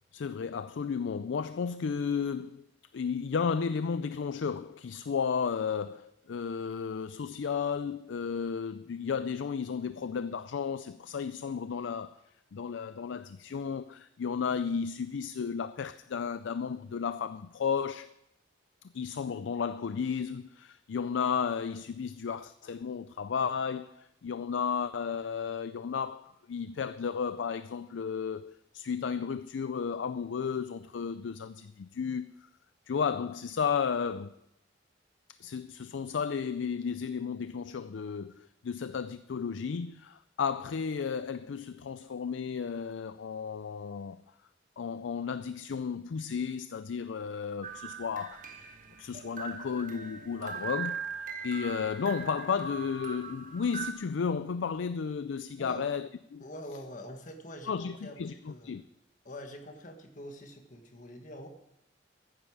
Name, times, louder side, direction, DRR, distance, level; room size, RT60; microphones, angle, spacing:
voice 1, 0.1-2.7 2.9-12.2 12.5-18.1 18.9-32.3 32.9-34.4 35.4-44.2 44.8-48.5 49.0-56.4 57.7-58.8, left 6 dB, 80° left, 0.4 m, -33 dB
sound 1, 47.6-53.9, right 6 dB, 45° right, 1.3 m, -40 dB
voice 2, 56.4-58.7 59.2-61.5, left 1 dB, 45° left, 1.7 m, -45 dB
14.5 x 9.8 x 4.9 m
head